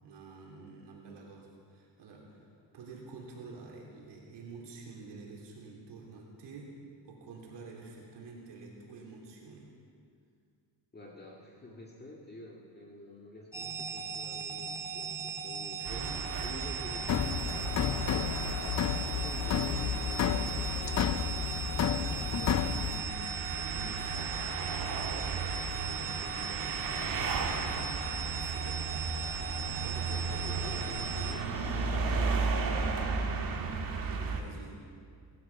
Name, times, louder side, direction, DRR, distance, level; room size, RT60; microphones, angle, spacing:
voice 1, 0.0-6.8 7.0-9.7 15.8-16.2 21.9-29.0 29.8-30.4 34.0-34.8, right 3 dB, 70° right, -2 dB, 3.2 m, -49 dB
voice 2, 10.9-16.0 16.4-18.8 19.2-21.2 30.1-33.2, left 2 dB, 20° left, -2 dB, 2.0 m, -49 dB
sound 1, 13.5-31.3, right 5 dB, 5° right, 2.1 m, -38 dB
sound 2, 15.8-34.4, right 4 dB, 50° right, 1.8 m, -35 dB
sound 3, 17.1-23.0, left 9 dB, 40° left, 0.6 m, -31 dB
18.5 x 12.0 x 5.9 m, 2.2 s
cardioid pair, 115°, 43 cm